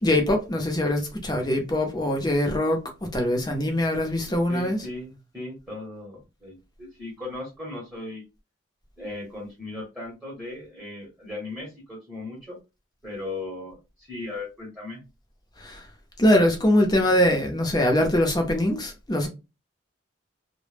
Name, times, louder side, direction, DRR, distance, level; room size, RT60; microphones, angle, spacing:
voice 1, 0.0-4.8 15.6-15.8 16.2-19.3, left 1 dB, 20° left, 0.6 m, -23 dB
voice 2, 4.2-8.2 9.0-12.6 13.0-15.0, left 2 dB, 10° right, 0.8 m, -37 dB
2.1 x 2.0 x 3.2 m
head